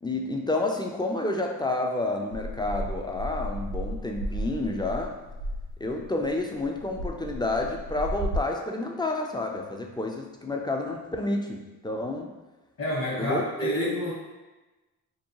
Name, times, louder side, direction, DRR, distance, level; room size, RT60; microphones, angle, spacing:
voice 1, 0.0-5.1 5.8-12.3 13.2-13.9, left 2 dB, 10° left, 1 dB, 0.3 m, -29 dB
sound 1, 2.3-8.4, equal, 85° right, 0.5 m, -34 dB
voice 2, 12.8-14.1, left 1 dB, 50° left, -5 dB, 1.4 m, -29 dB
2.7 x 2.1 x 2.9 m, 1.1 s
hypercardioid pair, 40°, 44 cm